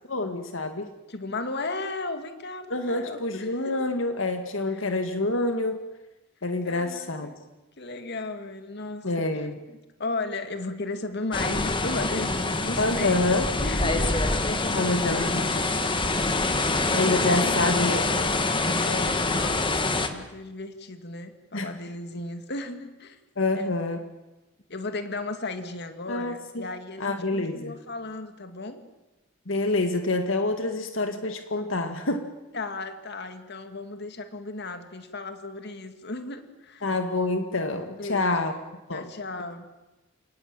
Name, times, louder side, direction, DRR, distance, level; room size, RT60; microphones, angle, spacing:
voice 1, 0.1-0.9 2.7-5.8 6.4-7.3 9.0-9.6 12.8-13.5 14.7-15.5 16.7-18.1 21.5-21.7 23.4-24.0 26.1-26.7 27.0-27.8 29.5-32.3 36.8-38.5 38.9-39.1, left 2 dB, 70° left, 7 dB, 2.0 m, -27 dB
voice 2, 1.1-3.7 4.7-4.9 6.6-7.4 7.8-9.5 10.0-13.2 13.6-17.8 18.8-23.2 23.5-23.6 24.7-28.8 32.5-36.9 38.0-39.7, left 2 dB, 55° left, 8 dB, 2.2 m, -36 dB
sound 1, 11.3-20.1, left 2 dB, 25° left, 1.9 m, -25 dB
29.5 x 18.5 x 9.0 m, 1.1 s
head